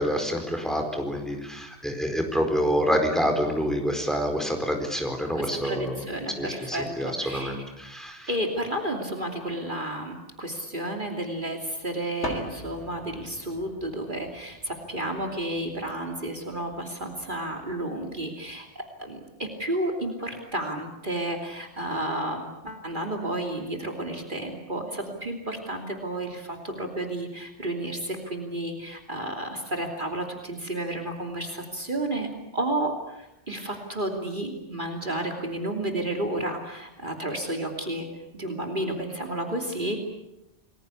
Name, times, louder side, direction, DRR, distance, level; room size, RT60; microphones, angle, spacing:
voice 1, 0.0-6.0 6.4-8.3, equal, ahead, 4 dB, 4.4 m, -27 dB
voice 2, 5.3-7.6 8.3-32.3 32.5-38.1 38.3-40.0, right 1 dB, 45° right, 3 dB, 3.1 m, -31 dB
sound 1, 8.9-9.3 12.2-18.5, left 1 dB, 75° left, 3.9 m, -43 dB
29.5 x 21.0 x 8.4 m, 0.89 s
omnidirectional pair, 1.2 m